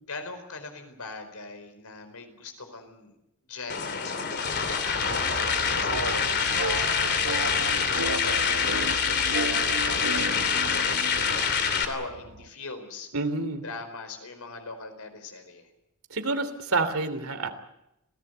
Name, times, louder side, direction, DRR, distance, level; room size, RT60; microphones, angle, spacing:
voice 1, 0.1-3.1 3.5-4.2 4.8-13.1 13.6-15.7, left 3 dB, 80° left, 7 dB, 4.8 m, -41 dB
sound 1, 3.7-11.8, left 6 dB, 50° left, 2.9 m, -26 dB
sound 2, 5.0-12.5, right 3 dB, 85° right, 1.4 m, -35 dB
voice 2, 13.1-13.6 16.1-17.5, right 3 dB, 70° right, 9 dB, 3.0 m, -28 dB
27.0 x 17.5 x 8.1 m, 0.86 s
head